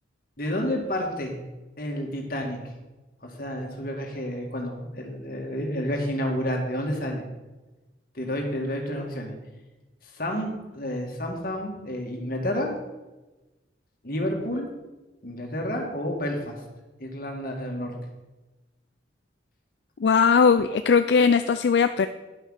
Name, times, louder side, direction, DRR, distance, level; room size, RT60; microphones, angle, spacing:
voice 1, 0.4-1.4 1.8-2.6 3.2-7.2 8.1-9.3 10.1-12.7 14.0-14.7 15.2-16.6 17.0-17.9, equal, 50° left, 1 dB, 2.1 m, -30 dB
voice 2, 20.0-22.1, left 5 dB, 70° left, 10 dB, 0.4 m, -19 dB
10.5 x 6.5 x 6.5 m, 1.1 s
head